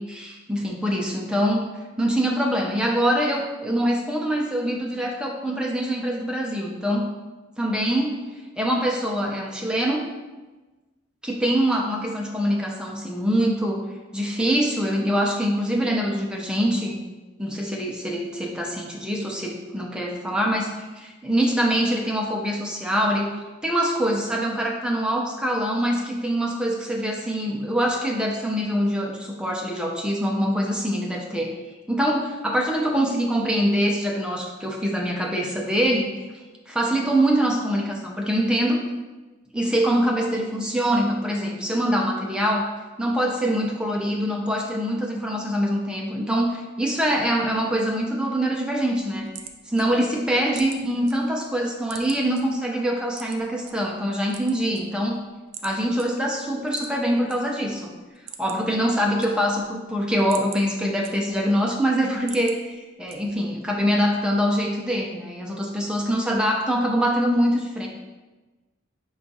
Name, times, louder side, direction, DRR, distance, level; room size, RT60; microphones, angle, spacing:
voice 1, 0.0-1.6 2.0-7.1 7.6-8.2 8.6-10.1 11.2-13.8 14.1-17.0 17.4-20.7 21.0-31.5 31.9-36.3 36.7-38.8 39.5-42.7 43.0-49.3 49.7-55.2 55.6-57.9 58.4-67.9, equal, 5° right, 0 dB, 0.4 m, -24 dB
sound 1, 49.0-51.1 51.5-52.4 53.1-53.7 54.2-55.2 55.5-55.7 56.0-56.1 56.6-57.4 57.7-57.8 58.1-58.7 59.0-59.7 60.1-61.5 61.9-62.6 63.1-63.5, right 8 dB, 70° right, 0.4 m, -41 dB
5.5 x 2.3 x 4.0 m, 1.2 s
head